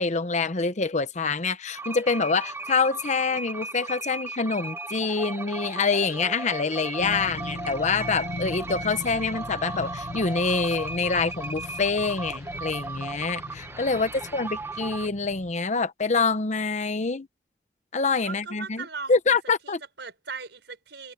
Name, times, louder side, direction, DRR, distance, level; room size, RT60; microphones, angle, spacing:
voice 1, 0.0-17.3 17.9-19.8, left 4 dB, 40° left, 0.9 m, -26 dB
sound 1, 1.7-15.1, right 3 dB, 15° right, 0.9 m, -36 dB
sound 2, 7.0-15.5, left 2 dB, 65° left, 1.0 m, -40 dB
voice 2, 13.8-14.7 18.2-19.1 19.6-21.1, right 5 dB, 75° right, 5.8 m, -40 dB
head